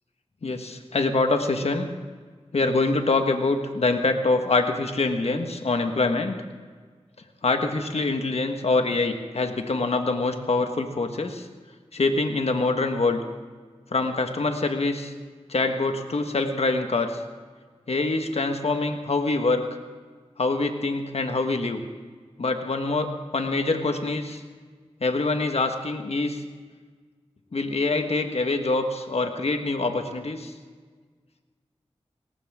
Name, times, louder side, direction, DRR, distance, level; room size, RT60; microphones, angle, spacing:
voice 1, 0.4-1.9 2.5-6.4 7.4-11.5 11.9-13.2 13.9-15.1 15.5-17.2 17.9-19.6 20.4-21.8 22.4-24.4 25.0-26.4 27.5-30.5, left 3 dB, 70° left, 5 dB, 1.5 m, -25 dB
20.0 x 18.0 x 3.7 m, 1.5 s
cardioid pair, 50°, 11 cm